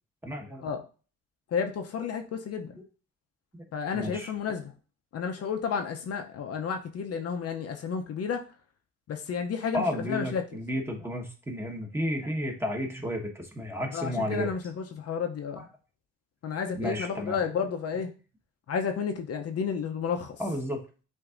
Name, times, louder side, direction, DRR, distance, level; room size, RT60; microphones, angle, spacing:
voice 1, 0.2-0.7 3.5-3.6 3.9-4.3 9.7-14.5 15.6-15.7 16.6-17.4 20.4-20.8, left 1 dB, 10° right, 1 dB, 1.2 m, -32 dB
voice 2, 1.5-2.7 3.7-4.7 5.1-8.4 9.1-10.4 13.9-15.6 16.4-18.1 18.7-20.4, left 6 dB, 55° left, 5 dB, 0.6 m, -31 dB
7.7 x 2.7 x 2.5 m, 0.36 s
cardioid pair, 90°, 30 cm